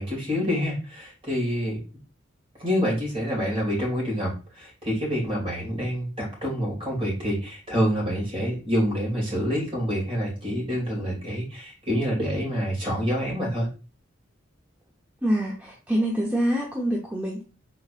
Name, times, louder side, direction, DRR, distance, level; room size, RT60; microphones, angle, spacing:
voice 1, 0.0-1.8 2.6-13.7, equal, 30° right, -3 dB, 2.5 m, -27 dB
voice 2, 15.2-17.4, equal, 10° right, -2 dB, 0.7 m, -26 dB
4.7 x 3.8 x 2.4 m, 0.34 s
head